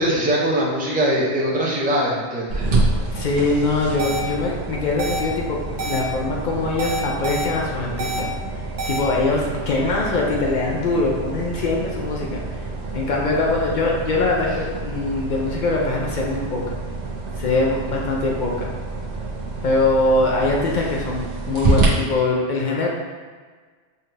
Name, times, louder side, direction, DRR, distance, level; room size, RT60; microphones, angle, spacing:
voice 1, 0.0-2.7, right 1 dB, 15° right, -4 dB, 0.4 m, -21 dB
Empty running sound, 2.5-21.9, right 3 dB, 55° right, 0.9 m, -28 dB
voice 2, 3.1-8.3 8.9-12.6 12.9-16.8 17.4-18.7 19.6-22.9, left 2 dB, 60° left, -2 dB, 0.5 m, -22 dB
sound 1, 4.0-4.2 5.0-5.2 5.8-6.0 6.8-7.5 8.0-8.2 8.8-9.0, right 3 dB, 80° right, 0.9 m, -27 dB
4.5 x 2.3 x 3.2 m, 1.5 s
omnidirectional pair, 1.2 m